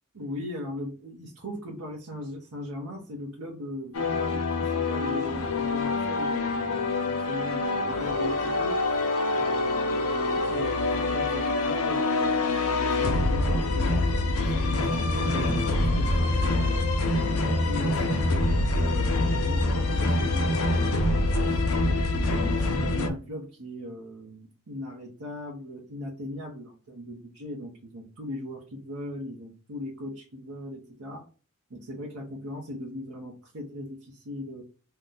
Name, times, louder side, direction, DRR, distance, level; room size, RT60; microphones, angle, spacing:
voice 1, 0.1-8.8 9.3-16.8 17.3-21.6 22.1-31.3 31.7-34.6, left 1 dB, 80° right, -2 dB, 0.9 m, -39 dB
sound 1, 3.9-23.1, left 2 dB, 65° left, 0.6 m, -25 dB
2.8 x 2.2 x 3.8 m, 0.36 s
head